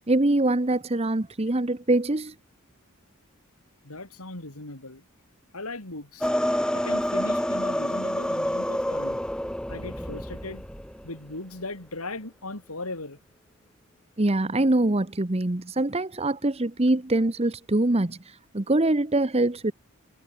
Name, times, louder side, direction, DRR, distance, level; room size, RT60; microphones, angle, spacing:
voice 1, 0.1-2.3 14.2-19.7, right 2 dB, 30° right, 1.0 m, -24 dB
voice 2, 3.8-5.0 5.5-6.3 6.7-9.2 9.7-10.6 11.0-13.2, left 2 dB, 80° left, 4.7 m, -38 dB
sound 1, 6.2-11.1, equal, 5° left, 2.2 m, -28 dB
head